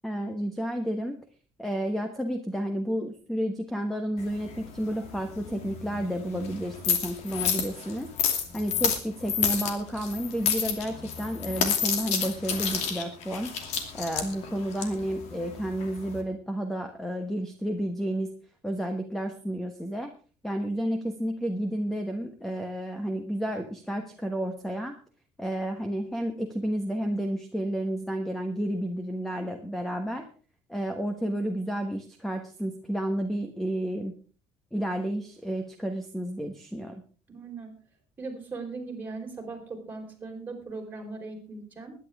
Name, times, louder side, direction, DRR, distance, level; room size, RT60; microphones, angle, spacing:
voice 1, 0.0-1.2 1.6-8.1 8.5-13.5 13.9-18.3 18.6-20.1 20.4-24.9 25.4-30.2 30.7-34.1 34.7-37.0, right 1 dB, ahead, 6 dB, 1.2 m, -31 dB
sound 1, 4.2-16.2, left 7 dB, 70° left, 2.6 m, -31 dB
voice 2, 37.3-37.8 38.2-41.9, right 3 dB, 15° right, 0 dB, 4.3 m, -39 dB
21.0 x 10.0 x 3.6 m, 0.39 s
cardioid pair, 165°, 11 cm